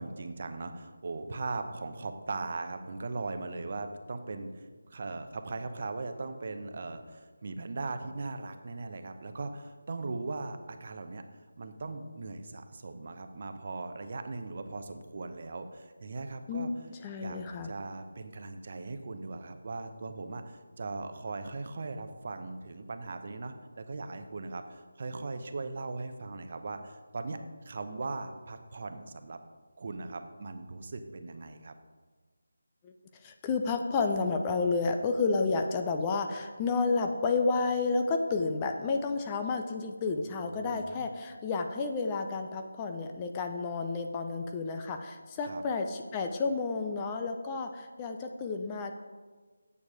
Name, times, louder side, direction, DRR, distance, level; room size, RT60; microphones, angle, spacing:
voice 1, 0.0-11.2 11.6-16.7 17.2-27.4 27.6-29.4 29.8-31.7 40.2-41.1 45.4-45.6, right 3 dB, 45° right, 8 dB, 0.8 m, -39 dB
voice 2, 16.5-17.7 32.8-32.9 33.2-48.9, left 4 dB, 15° left, 5 dB, 0.5 m, -31 dB
9.0 x 6.9 x 4.9 m, 1.4 s
figure-of-eight pair, 165°, 0 cm